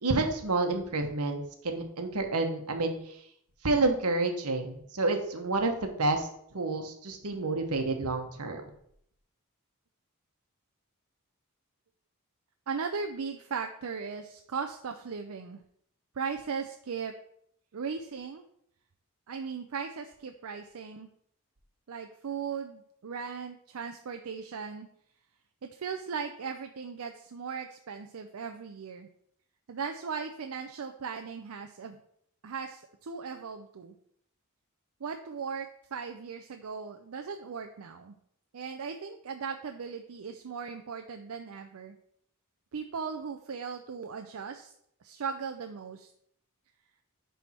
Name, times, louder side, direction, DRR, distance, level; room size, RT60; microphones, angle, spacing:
voice 1, 0.0-2.9 3.6-6.3 6.5-8.7, right 3 dB, 85° right, 6 dB, 1.1 m, -29 dB
voice 2, 12.7-15.6 16.1-17.1 17.7-18.5 19.3-21.1 21.9-24.9 25.6-29.1 29.7-32.0 32.4-33.9 35.0-38.2 38.5-42.0 42.7-44.7 45.0-46.1, right 5 dB, 70° right, 6 dB, 0.5 m, -38 dB
10.5 x 3.5 x 4.3 m, 0.70 s
head